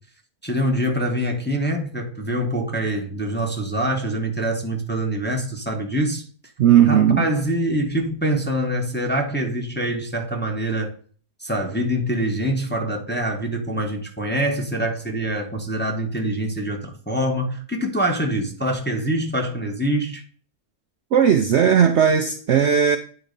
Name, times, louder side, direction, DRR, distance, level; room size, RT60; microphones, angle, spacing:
voice 1, 0.4-6.2 6.9-10.9 11.4-20.2, right 1 dB, 10° left, 1.0 m, -25 dB
voice 2, 6.6-7.3 21.1-23.0, right 8 dB, 60° right, 0.8 m, -16 dB
9.1 x 3.9 x 5.2 m
omnidirectional pair, 1.6 m